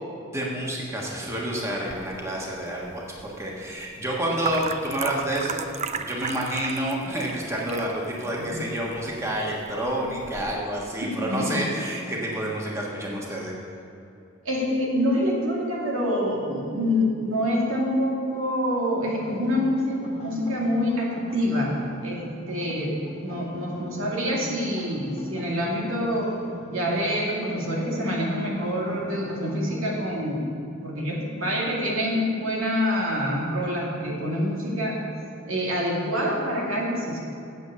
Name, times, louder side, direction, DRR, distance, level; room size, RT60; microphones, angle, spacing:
voice 1, 0.3-5.6 6.0-13.5, right 1 dB, 15° right, -3 dB, 1.3 m, -29 dB
sound 1, 1.9-10.6, right 5 dB, 35° right, 0.4 m, -36 dB
voice 2, 11.0-11.6 14.4-26.3 26.7-30.5 30.8-35.0 35.4-37.2, equal, 85° right, -3 dB, 2.3 m, -26 dB
sound 2, 19.0-30.1, right 1 dB, 30° left, 1.2 m, -41 dB
8.0 x 7.8 x 6.8 m, 2.7 s
head